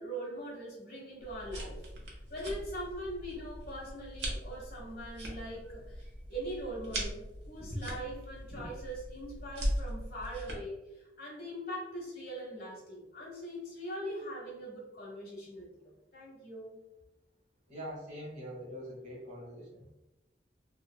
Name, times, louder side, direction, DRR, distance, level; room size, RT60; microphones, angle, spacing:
voice 1, 0.0-1.8 2.3-16.8, right 1 dB, 55° left, -4 dB, 1.3 m, -42 dB
sound 1, 1.2-10.5, equal, 85° right, 0.9 m, -40 dB
voice 2, 17.7-19.9, equal, 40° right, -4 dB, 1.2 m, -43 dB
3.4 x 2.9 x 2.3 m, 0.98 s
head